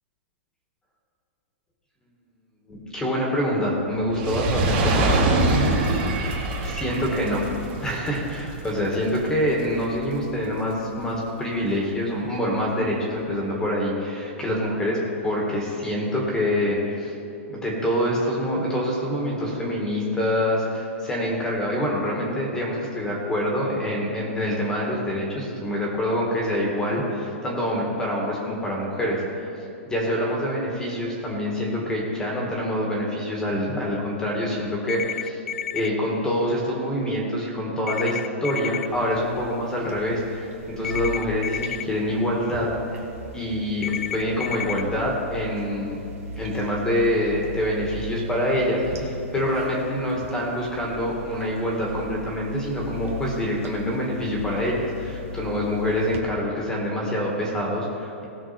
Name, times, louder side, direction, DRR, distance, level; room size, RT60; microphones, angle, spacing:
voice 1, 2.7-5.1 5.5-6.1 6.6-7.5 7.8-17.1 17.5-29.5 29.9-35.4 35.7-42.7 43.3-46.0 46.4-58.2, equal, 10° left, -2 dB, 1.9 m, -26 dB
Fire, 4.0-10.5 11.1-11.2, right 2 dB, 40° right, 2.4 m, -25 dB
sound 1, 34.9-35.9 37.9-38.9 40.8-41.8 43.8-44.8, left 9 dB, 85° left, 0.3 m, -31 dB
sound 2, 38.8-56.2, left 1 dB, 75° right, 2.1 m, -38 dB
18.5 x 6.9 x 4.4 m, 2.7 s
hypercardioid pair, 155°, 8 cm